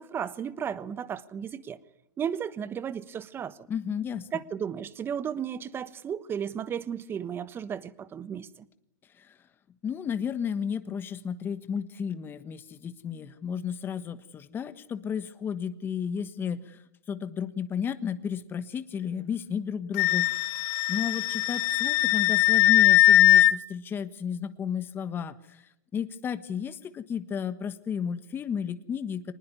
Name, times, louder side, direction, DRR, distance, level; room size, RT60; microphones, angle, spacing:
voice 1, 0.0-1.8 2.2-3.7 4.3-8.6, right 8 dB, 20° right, 1.2 m, -34 dB
voice 2, 3.7-4.3 9.2-9.4 9.8-16.8 17.1-20.6 20.9-29.3, left 7 dB, 20° left, 1.3 m, -33 dB
Wind instrument woodwind instrument, 20.0-23.5, left 15 dB, 55° left, 1.2 m, -20 dB
24.5 x 20.0 x 9.7 m
hypercardioid pair, 130°, 10 cm